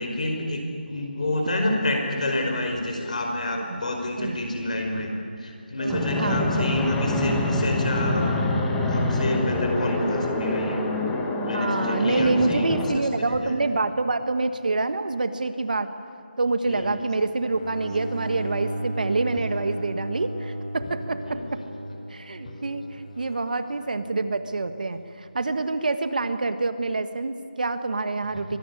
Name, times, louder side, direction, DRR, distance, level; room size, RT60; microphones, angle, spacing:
voice 1, 0.0-5.1 5.4-8.4 8.9-10.8 11.4-13.6 16.7-17.0 20.8-20.9 21.2-21.5 21.9-22.0 22.4-22.6, left 1 dB, 45° left, 3 dB, 5.1 m, -29 dB
voice 2, 5.8-6.8 10.0-10.2 11.5-15.9 16.4-21.4 22.1-22.8 23.2-28.6, right 3 dB, 55° right, 10 dB, 1.5 m, -26 dB
Fixed-wing aircraft airplane, 5.9-13.0, left 2 dB, 5° left, 1.3 m, -25 dB
Bowed string instrument, 17.4-24.4, equal, 25° left, 3.0 m, -35 dB
24.5 x 19.5 x 9.9 m, 2.5 s
figure-of-eight pair, 170°, 5 cm